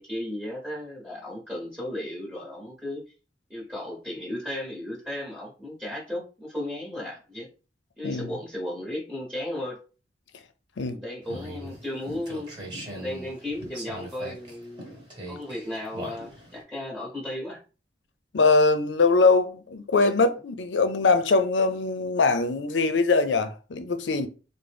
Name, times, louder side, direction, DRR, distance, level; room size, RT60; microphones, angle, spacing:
voice 1, 0.0-3.0 3.5-7.5 8.0-9.8 10.8-12.5 12.9-14.9 15.3-17.6, left 1 dB, 10° right, 1.0 m, -35 dB
sound 1, 11.2-16.6, equal, 25° right, 1.3 m, -40 dB
voice 2, 18.3-24.3, left 3 dB, 85° left, 0.5 m, -22 dB
3.8 x 2.0 x 3.3 m
head